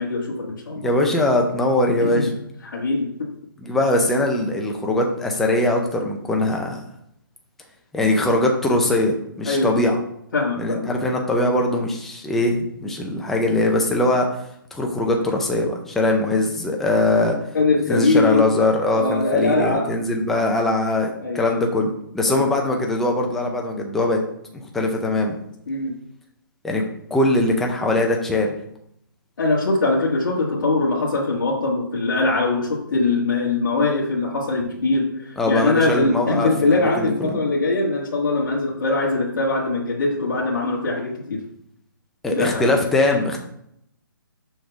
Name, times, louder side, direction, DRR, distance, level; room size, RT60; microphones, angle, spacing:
voice 1, 0.0-0.9 2.0-2.4 2.6-3.3 9.4-9.8 10.3-10.9 17.5-18.6 18.9-19.9 21.2-21.6 22.3-22.5 25.7-25.9 29.4-41.5 42.3-42.8, left 3 dB, 60° left, -3 dB, 1.5 m, -22 dB
voice 2, 0.8-2.3 3.6-6.8 7.9-10.0 10.6-14.3 14.7-17.4 17.9-24.2 24.7-25.4 26.6-26.8 27.1-28.6 35.4-37.4 42.2-43.4, left 2 dB, ahead, 1 dB, 0.4 m, -21 dB
6.3 x 3.4 x 5.9 m, 0.74 s
hypercardioid pair, 165°, 12 cm